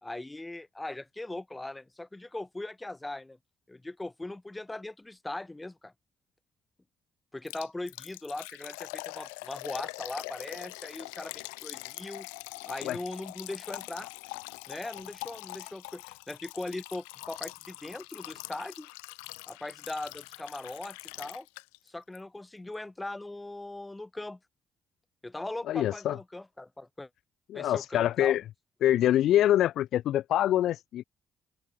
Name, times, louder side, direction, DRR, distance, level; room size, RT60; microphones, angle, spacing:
voice 1, 0.0-3.4 3.7-5.9 7.3-12.3 12.7-14.1 14.7-18.9 19.5-21.5 21.9-24.4 25.2-27.1 27.5-28.4, left 2 dB, 15° left, 1.5 m, -40 dB
Liquid, 7.5-21.9 22.1-22.2 22.7-22.8, left 39 dB, 85° left, 0.7 m, -43 dB
voice 2, 25.7-26.2 27.5-28.4 28.8-31.0, left 12 dB, 70° left, 0.3 m, -25 dB
open air
hypercardioid pair, 50°, 0 cm